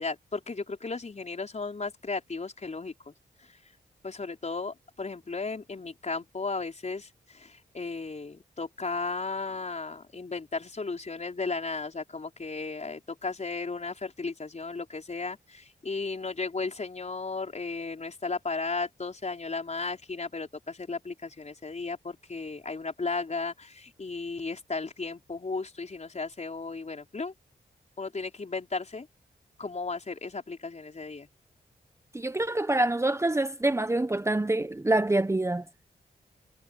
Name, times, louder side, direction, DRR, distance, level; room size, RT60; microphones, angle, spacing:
voice 1, 0.0-3.1 4.0-27.3 28.0-29.1 29.6-31.3, left 3 dB, 45° left, 5.0 m, -35 dB
voice 2, 32.1-35.6, right 2 dB, 15° right, 1.0 m, -26 dB
cardioid pair, 60°, 17 cm